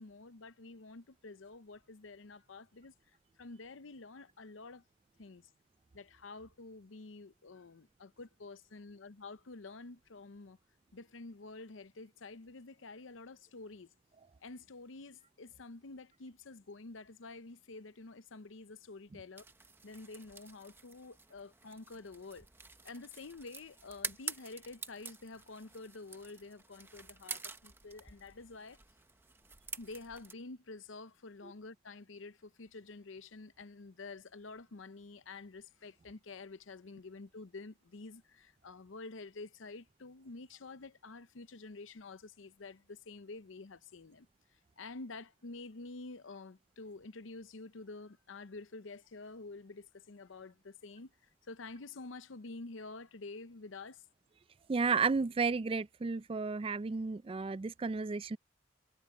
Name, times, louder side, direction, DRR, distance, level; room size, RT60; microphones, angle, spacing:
voice 1, 0.0-2.9 3.4-4.8 5.2-5.5 5.9-10.6 10.9-13.9 14.4-19.4 19.8-22.5 22.8-28.8 29.7-44.3 44.8-51.1 51.5-54.0, left 3 dB, 85° left, 0.8 m, -49 dB
sound 1, 19.4-30.3, right 4 dB, 10° right, 0.9 m, -48 dB
voice 2, 54.7-58.4, right 4 dB, 30° right, 0.3 m, -32 dB
head